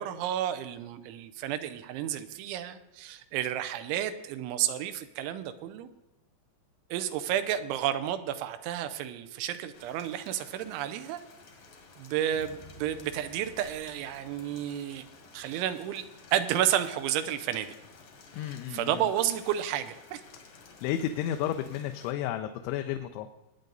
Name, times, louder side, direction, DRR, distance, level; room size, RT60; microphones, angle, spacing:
voice 1, 0.0-5.9 6.9-11.2 12.0-15.0 15.3-16.1 16.3-17.7 18.4-20.2, right 11 dB, 85° right, 10 dB, 3.1 m, -31 dB
Rain, 9.7-22.1, left 4 dB, 55° left, 1.7 m, -53 dB
sound 1, 12.3-16.3, right 2 dB, 65° right, 2.2 m, -54 dB
voice 2, 18.3-19.1 20.8-23.3, left 11 dB, 85° left, 6 dB, 3.0 m, -32 dB
20.5 x 9.0 x 3.9 m, 0.95 s
omnidirectional pair, 5.4 m